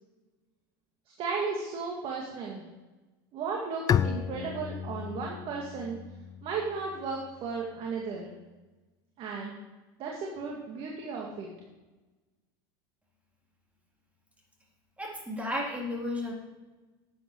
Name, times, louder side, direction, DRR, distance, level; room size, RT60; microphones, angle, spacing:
voice 1, 1.2-2.6 3.3-6.0 6.4-8.3 9.2-9.5 10.0-11.5, right 4 dB, 50° right, -1 dB, 2.2 m, -35 dB
Bowed string instrument, 3.9-7.4, left 9 dB, 30° left, 0.5 m, -32 dB
voice 2, 15.0-16.3, left 1 dB, 10° right, -2 dB, 3.9 m, -33 dB
11.5 x 9.1 x 4.8 m, 1.2 s
supercardioid pair, 105°, 12 cm